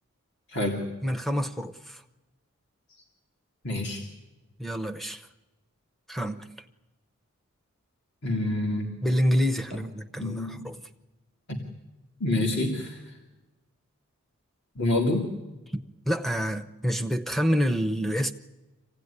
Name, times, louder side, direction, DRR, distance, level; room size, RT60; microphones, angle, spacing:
voice 1, 0.5-0.9 3.6-4.0 8.2-9.0 10.2-10.6 11.5-11.6 12.2-13.2 14.8-15.3, left 2 dB, 50° left, 2.2 m, -27 dB
voice 2, 1.0-2.0 4.6-5.3 6.1-6.5 9.0-10.8 15.7-18.3, equal, ahead, 0.8 m, -27 dB
25.5 x 16.5 x 9.8 m
head